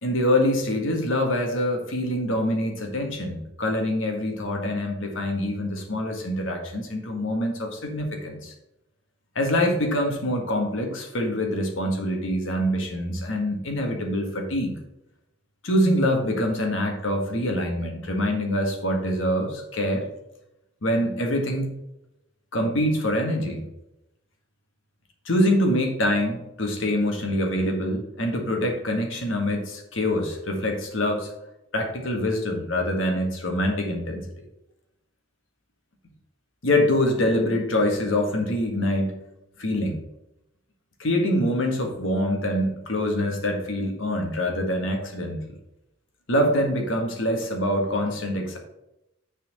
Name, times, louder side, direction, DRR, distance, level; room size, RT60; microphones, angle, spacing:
voice 1, 0.0-8.5 9.3-14.8 15.6-20.0 20.8-21.7 22.5-23.6 25.2-31.3 31.7-34.2 36.6-39.1 39.6-40.0 41.0-45.4 46.3-48.6, left 1 dB, 70° left, 2 dB, 1.7 m, -25 dB
6.8 x 4.3 x 6.6 m, 0.88 s
head